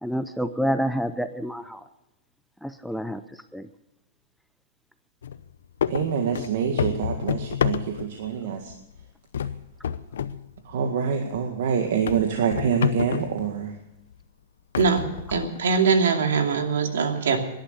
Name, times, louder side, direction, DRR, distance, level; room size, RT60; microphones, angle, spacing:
voice 1, 0.0-1.8 2.6-3.2 3.5-3.7, equal, ahead, 10 dB, 0.5 m, -28 dB
sound 1, 5.2-5.4 5.8-8.3 8.7-9.0 9.3-10.4 10.7-10.8 11.3-11.4 12.1-13.4 14.1-14.2 14.7-15.8, left 8 dB, 85° left, 0.8 m, -28 dB
voice 2, 5.9-8.7 10.7-13.7, right 7 dB, 60° right, 4 dB, 1.9 m, -26 dB
voice 3, 14.8-17.4, right 5 dB, 85° right, 4 dB, 2.6 m, -22 dB
18.0 x 11.5 x 6.9 m, 0.92 s
supercardioid pair, 170°, 0 cm